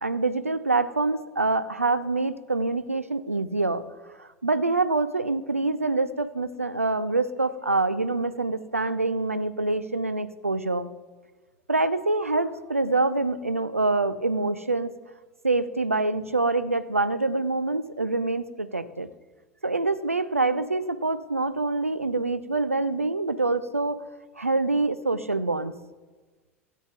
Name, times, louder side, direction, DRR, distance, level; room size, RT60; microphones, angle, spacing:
voice 1, 0.0-3.8 4.2-10.9 11.7-14.9 15.4-19.1 19.6-24.0 24.4-25.7, right 3 dB, 85° right, 13 dB, 0.5 m, -25 dB
16.0 x 8.5 x 3.4 m, 1.3 s
figure-of-eight pair, 75°, 7 cm